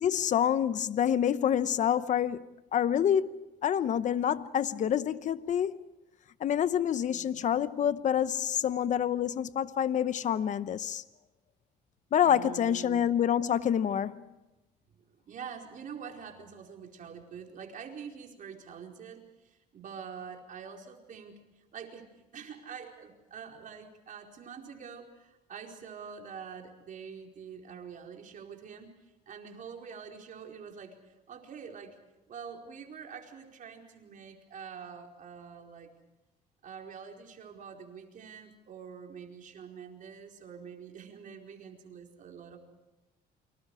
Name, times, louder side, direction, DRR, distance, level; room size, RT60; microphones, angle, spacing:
voice 1, 0.0-5.8 6.4-11.0 12.1-14.2, left 9 dB, 45° left, 0.9 m, -27 dB
voice 2, 7.1-7.4 12.2-13.0 15.3-28.9 29.3-32.0 32.3-35.9 36.6-42.6, right 6 dB, 50° right, 4.7 m, -45 dB
29.0 x 25.5 x 4.9 m
cardioid pair, 110°, 17 cm